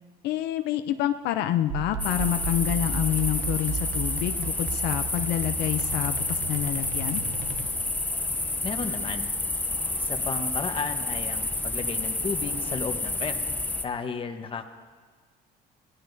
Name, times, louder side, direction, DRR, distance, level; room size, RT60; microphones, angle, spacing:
voice 1, 0.2-7.2, left 12 dB, 85° left, 8 dB, 0.6 m, -28 dB
sound 1, 1.7-8.1, right 6 dB, 80° right, 1.0 m, -35 dB
sound 2, 2.0-13.9, left 2 dB, 10° left, 0.7 m, -29 dB
voice 2, 8.6-9.3 10.0-13.5 13.8-14.7, left 5 dB, 30° left, 6 dB, 1.1 m, -33 dB
25.0 x 17.5 x 2.7 m, 1.5 s
cardioid pair, 110°, 17 cm